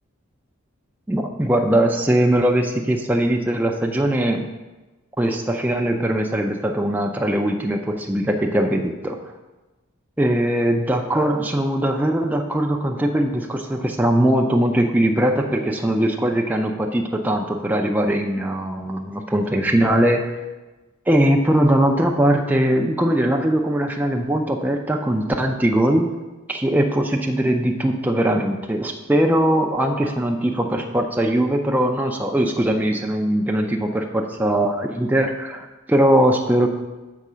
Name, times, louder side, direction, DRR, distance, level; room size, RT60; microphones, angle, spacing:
voice 1, 1.1-4.5 5.2-9.3 10.2-20.4 21.1-26.1 26.5-36.7, right 1 dB, 10° right, 2 dB, 0.4 m, -20 dB
6.7 x 4.6 x 6.1 m, 1.1 s
head